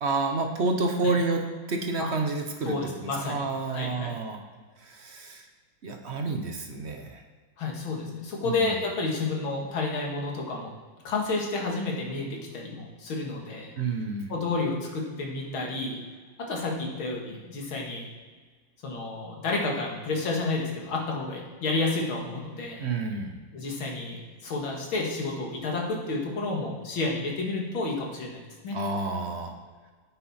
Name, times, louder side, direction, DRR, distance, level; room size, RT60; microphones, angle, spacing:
voice 1, 0.0-1.4 1.7-2.8 3.0-4.4 4.8-5.5 5.8-7.2 8.4-8.7 13.8-14.3 22.8-23.3 28.7-29.5, right 3 dB, 50° right, 4 dB, 0.8 m, -29 dB
voice 2, 2.6-3.4 3.7-4.1 7.6-10.7 11.0-13.7 14.3-16.0 16.4-18.1 18.8-22.8 23.5-28.8, left 3 dB, 90° left, -1 dB, 2.6 m, -30 dB
9.5 x 9.5 x 4.2 m, 1.5 s
omnidirectional pair, 2.2 m